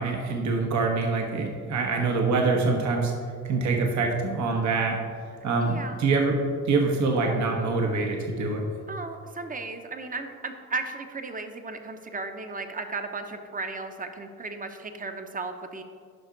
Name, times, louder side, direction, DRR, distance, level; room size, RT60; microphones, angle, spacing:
voice 1, 0.0-3.1 3.4-5.0 5.4-6.4 6.6-8.6, right 3 dB, 65° right, 1 dB, 1.2 m, -25 dB
voice 2, 5.6-6.1 8.9-15.8, right 3 dB, 25° right, 7 dB, 0.8 m, -35 dB
10.5 x 5.6 x 3.9 m, 2.2 s
cardioid pair, 90°, 30 cm